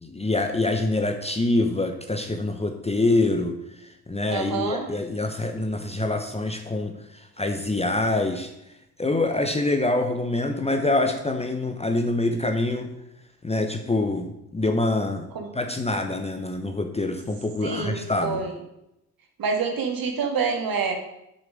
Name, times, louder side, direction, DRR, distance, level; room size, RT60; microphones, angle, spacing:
voice 1, 0.0-3.6 4.1-8.5 9.0-12.9 13.4-15.3 15.5-18.4, left 2 dB, 15° left, 5 dB, 0.9 m, -25 dB
voice 2, 4.3-4.9 15.3-15.5 17.6-18.5 19.4-20.9, right 5 dB, 50° right, 3 dB, 2.0 m, -27 dB
7.0 x 6.5 x 5.0 m, 0.85 s
hypercardioid pair, 55°, 46 cm